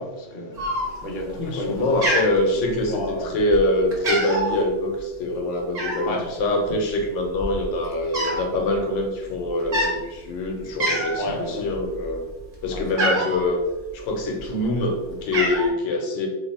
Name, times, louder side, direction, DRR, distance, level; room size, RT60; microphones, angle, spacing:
voice 1, 0.0-2.0 2.6-3.3 6.0-6.3 11.2-11.7 12.7-12.8 13.1-13.3, left 1 dB, 50° left, -1 dB, 0.7 m, -32 dB
Cat, 0.6-1.2 1.5-1.8 2.0-3.0 3.5-3.7 3.9-4.5 5.7-6.2 7.0-7.1 7.3-8.4 8.7-9.0 9.6-9.9 10.4-10.5 10.8-11.3 11.7-13.4 14.2-14.8 15.0-15.7, right 1 dB, 40° right, 1.0 m, -25 dB
voice 2, 1.3-12.3 12.6-13.6 13.9-16.3, left 1 dB, 90° left, 2 dB, 1.0 m, -24 dB
2.8 x 2.0 x 4.0 m, 1.1 s
omnidirectional pair, 1.3 m